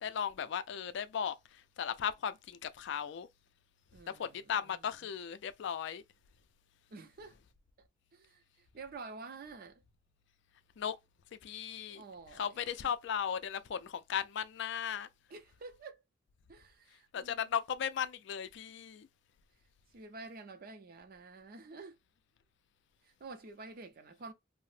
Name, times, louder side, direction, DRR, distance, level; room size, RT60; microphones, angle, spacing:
voice 1, 0.0-3.3 4.2-6.0 10.8-11.0 11.4-15.1 17.1-19.1, left 8 dB, 70° left, 0.3 m, -37 dB
voice 2, 3.9-5.1 6.9-7.4 7.8-9.8 11.9-12.9 15.3-16.0 16.5-17.5 19.9-22.0 23.0-24.3, right 3 dB, 50° right, 0.5 m, -50 dB
2.8 x 2.0 x 3.1 m
head